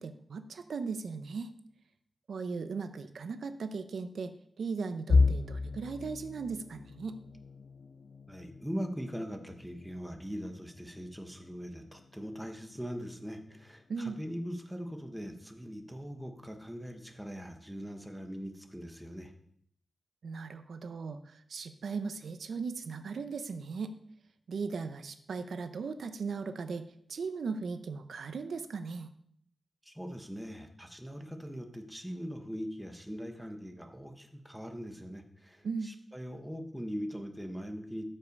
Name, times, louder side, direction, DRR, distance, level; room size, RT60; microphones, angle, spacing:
voice 1, 0.0-1.5 2.3-7.2 13.9-14.2 20.2-23.9 24.5-29.1 35.6-35.9, right 4 dB, 80° right, 9 dB, 0.7 m, -38 dB
sound 1, 5.1-16.9 17.4-17.6 18.0-18.2 19.0-19.5, left 4 dB, 75° left, 0.6 m, -35 dB
voice 2, 8.3-19.3 29.8-38.1, equal, ahead, 4 dB, 1.1 m, -41 dB
13.0 x 5.5 x 5.3 m, 0.67 s
wide cardioid pair, 150°, 0 cm